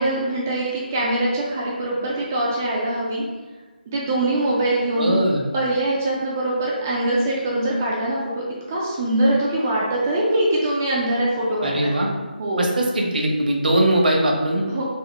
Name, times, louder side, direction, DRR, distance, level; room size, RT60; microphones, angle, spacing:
voice 1, 0.0-3.2 3.9-5.2 5.5-12.0 12.4-12.6 14.7-14.8, right 1 dB, 15° right, -5 dB, 0.4 m, -23 dB
voice 2, 5.0-5.4 11.6-12.1 12.6-14.6, right 1 dB, 60° right, 0 dB, 0.9 m, -20 dB
3.6 x 2.6 x 4.2 m, 1.3 s
figure-of-eight pair, 170°, 5 cm